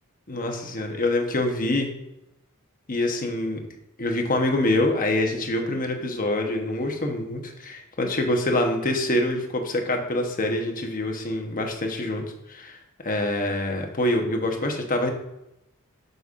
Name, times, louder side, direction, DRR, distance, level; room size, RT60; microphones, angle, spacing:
voice 1, 0.3-1.9 2.9-3.6 4.0-12.2 12.5-12.8 13.0-15.1, left 1 dB, 40° left, 3 dB, 1.0 m, -25 dB
8.2 x 6.7 x 2.5 m, 0.88 s
head